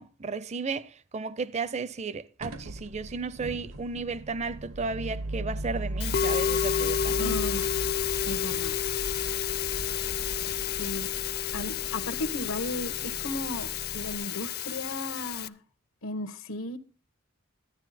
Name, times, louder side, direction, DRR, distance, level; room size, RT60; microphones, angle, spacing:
voice 1, 0.0-7.4, right 4 dB, 35° right, 0.5 m, -34 dB
sound 1, 2.4-14.2, right 1 dB, 80° right, 1.1 m, -38 dB
Musical instrument, 6.0-15.5, left 9 dB, 50° left, 0.5 m, -30 dB
voice 2, 7.2-7.7 8.2-8.7 10.8-11.1 11.5-15.5 16.0-16.8, left 2 dB, 85° left, 1.1 m, -35 dB
12.0 x 10.0 x 4.1 m
head